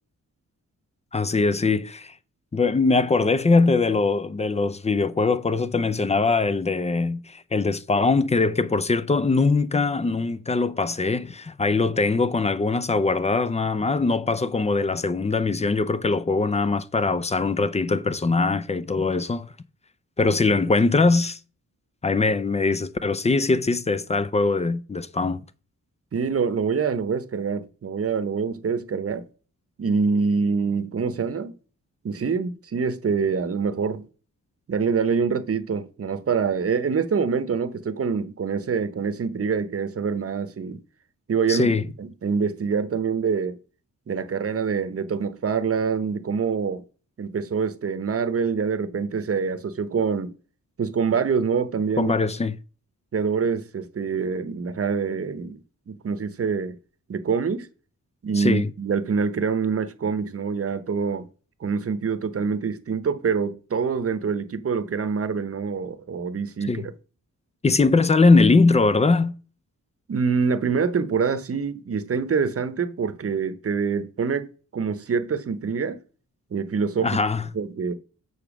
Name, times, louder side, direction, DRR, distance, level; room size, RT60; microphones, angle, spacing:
voice 1, 1.1-2.1 2.5-19.5 20.2-21.4 22.0-25.4 41.5-41.9 52.0-52.6 58.4-58.7 66.6-66.9 67.6-69.3 77.0-77.5, left 3 dB, 20° left, 0.4 m, -21 dB
voice 2, 26.1-29.2 29.8-31.5 32.0-34.1 34.7-40.8 41.3-43.6 44.1-46.8 47.2-50.3 50.8-52.1 53.1-55.6 55.9-56.8 57.1-57.7 58.2-61.3 61.6-66.9 70.1-76.0 76.5-77.1 77.5-77.9, right 5 dB, 45° right, 0.8 m, -25 dB
7.0 x 4.6 x 6.0 m
wide cardioid pair, 150°, 33 cm